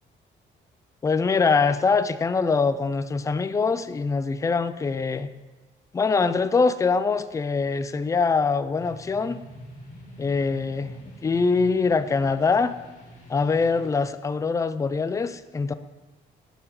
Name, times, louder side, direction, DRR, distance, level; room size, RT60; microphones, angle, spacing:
voice 1, 1.0-5.3 5.9-9.4 10.2-11.0 11.2-12.7 13.3-15.7, left 4 dB, 15° left, 13 dB, 0.3 m, -23 dB
sound 1, 8.8-13.9, equal, 40° left, 2.1 m, -45 dB
6.2 x 5.6 x 5.3 m, 1.2 s
cardioid pair, 90°, 20 cm